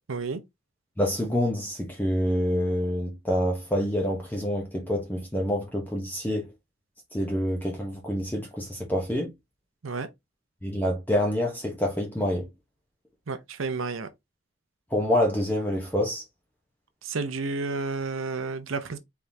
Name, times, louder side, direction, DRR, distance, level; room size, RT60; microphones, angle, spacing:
voice 1, 0.1-0.4 9.8-10.1 13.3-14.1 17.0-19.0, right 4 dB, 85° right, 0.7 m, -31 dB
voice 2, 1.0-6.5 7.1-9.3 10.6-12.5 14.9-16.2, equal, 10° left, 0.8 m, -27 dB
4.4 x 3.6 x 2.6 m
head